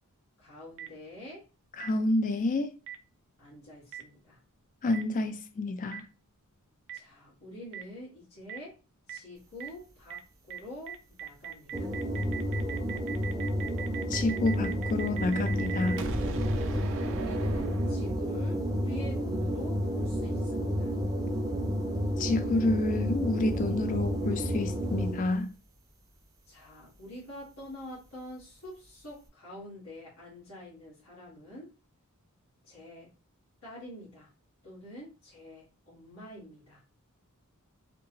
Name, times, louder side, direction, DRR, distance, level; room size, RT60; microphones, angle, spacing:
voice 1, 0.4-1.5 3.4-4.4 6.9-8.8 9.1-11.9 16.7-20.9 26.5-31.7 32.6-33.1 33.6-34.3 34.6-36.8, left 1 dB, 85° left, 1.9 m, -46 dB
Boom, 0.8-0.9 1.8-1.9 2.9-3.0 3.9-4.0 4.9-5.0 5.9-6.0 6.9-7.0 7.7-7.8 8.5-8.6 9.1-9.2 9.6-9.7 10.1-10.2 10.5-10.6 10.9-18.4, right 5 dB, 60° right, 0.5 m, -38 dB
voice 2, 1.8-2.7 4.8-6.1 14.1-16.0 22.2-25.5, left 2 dB, 40° left, 0.4 m, -29 dB
sound 1, 11.7-25.4, equal, 15° right, 0.6 m, -31 dB
3.5 x 2.4 x 3.1 m
head